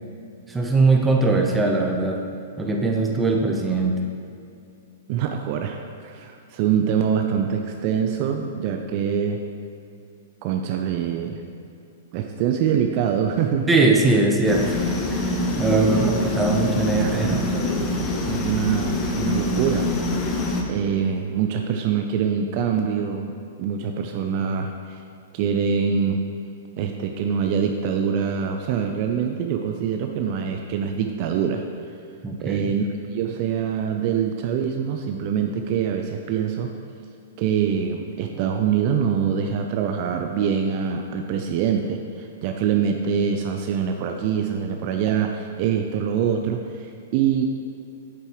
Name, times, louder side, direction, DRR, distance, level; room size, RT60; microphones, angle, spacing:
voice 1, 0.5-2.3 2.6-4.0 13.7-17.4 32.2-32.7, right 3 dB, 10° right, 1 dB, 0.9 m, -21 dB
voice 2, 5.1-9.4 10.4-11.4 12.1-13.7 15.7-16.6 17.0-19.9 20.7-23.3 23.6-25.0 25.3-26.2 26.8-31.6 32.4-36.7 37.4-47.4, right 7 dB, 45° right, 4 dB, 0.5 m, -24 dB
sound 1, 14.5-20.6, left 2 dB, 25° left, 0.9 m, -25 dB
8.4 x 6.7 x 3.1 m, 2.6 s
hypercardioid pair, 115°, 0 cm